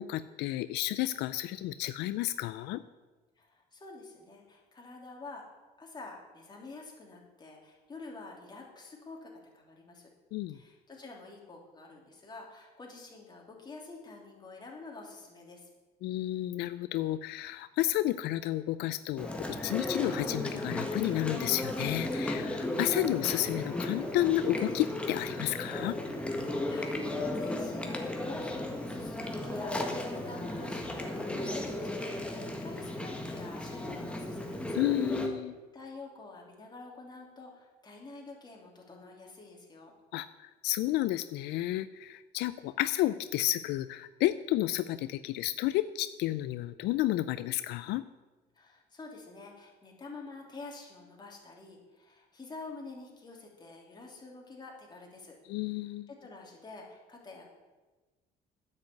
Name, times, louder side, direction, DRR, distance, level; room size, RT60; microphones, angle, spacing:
voice 1, 0.0-2.8 10.3-10.6 16.0-26.0 34.7-35.6 40.1-48.0 55.5-56.1, left 15 dB, 85° left, 13 dB, 0.4 m, -31 dB
voice 2, 3.4-5.5 5.8-10.1 10.5-15.7 26.7-34.8 35.7-39.9 48.5-55.4 55.8-57.5, left 3 dB, 25° left, -1 dB, 3.0 m, -48 dB
Chewing mastication, 19.2-35.3, left 1 dB, 5° left, 1.6 m, -35 dB
9.6 x 6.7 x 8.5 m, 1.2 s
cardioid pair, 110°, 17 cm